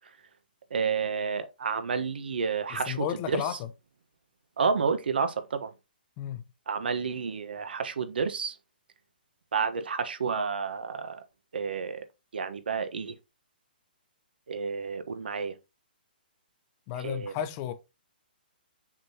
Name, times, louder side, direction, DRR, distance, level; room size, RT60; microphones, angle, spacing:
voice 1, 0.7-3.4 4.6-5.7 6.7-8.5 9.5-11.2 11.5-12.0 12.3-13.1 14.5-15.5 17.0-17.3, right 5 dB, 80° right, 1.3 m, -30 dB
voice 2, 2.7-3.7 6.2-6.4 16.9-17.7, left 10 dB, 25° left, 0.8 m, -33 dB
6.4 x 5.9 x 2.9 m
hypercardioid pair, 165°, 5 cm